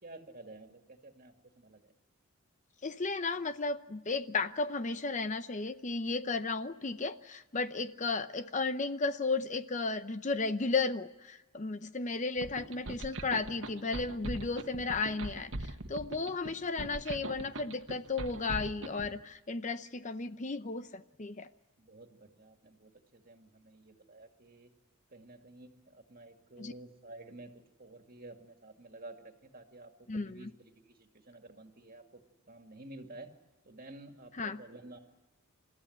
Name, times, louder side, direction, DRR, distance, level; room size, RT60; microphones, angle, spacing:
voice 1, 0.0-1.9 21.8-24.7 25.1-27.5 27.8-32.2 32.5-33.3 33.6-35.0, right 2 dB, 40° right, 5 dB, 2.3 m, -51 dB
voice 2, 2.8-21.5 26.6-26.7 30.1-30.5 34.4-34.6, left 3 dB, 35° left, 11 dB, 0.7 m, -34 dB
sound 1, 12.4-19.1, right 2 dB, 65° right, 1.5 m, -41 dB
29.0 x 14.0 x 10.0 m, 1.1 s
head